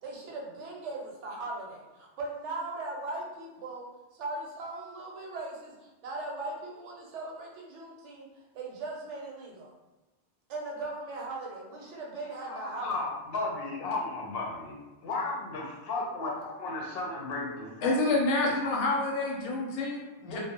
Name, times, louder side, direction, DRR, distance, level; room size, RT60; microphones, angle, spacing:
voice 1, 0.0-3.9 4.1-9.7 10.5-13.0, right 2 dB, 80° right, -1 dB, 0.9 m, -39 dB
voice 2, 12.4-14.8 15.0-18.0 18.4-18.7 20.2-20.4, left 3 dB, 65° left, -2 dB, 0.7 m, -34 dB
voice 3, 17.8-20.4, left 2 dB, 90° left, -1 dB, 1.0 m, -28 dB
2.3 x 2.0 x 2.7 m, 1.1 s
omnidirectional pair, 1.2 m